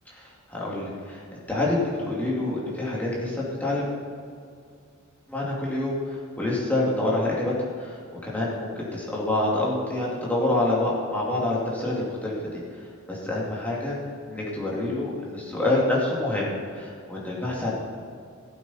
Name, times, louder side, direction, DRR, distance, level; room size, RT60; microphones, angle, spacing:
voice 1, 0.2-1.2 1.5-3.8 5.3-7.5 7.8-14.0 14.3-17.7, left 2 dB, 10° left, -6 dB, 2.6 m, -27 dB
15.0 x 8.3 x 4.4 m, 2.3 s
head